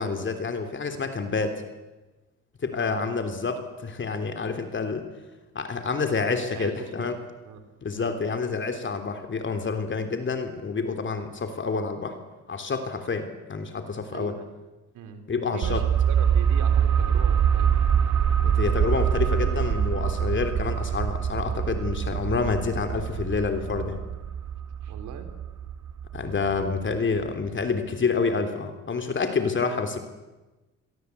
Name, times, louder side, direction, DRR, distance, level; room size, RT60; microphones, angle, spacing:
voice 1, 0.0-1.5 2.6-5.1 5.5-7.1 7.8-12.2 12.5-14.4 15.3-15.8 18.4-24.0 26.1-30.0, left 4 dB, 40° left, 7 dB, 3.2 m, -28 dB
voice 2, 2.8-3.1 6.5-7.1 7.5-7.6 8.0-8.1 14.1-14.5 14.9-17.7 24.8-25.3, right 7 dB, 85° right, 7 dB, 3.8 m, -40 dB
sound 1, 15.6-27.0 27.3-27.4, right 8 dB, 65° right, 1.8 m, -25 dB
28.5 x 22.5 x 8.4 m, 1.1 s
cardioid pair, 90°, 30 cm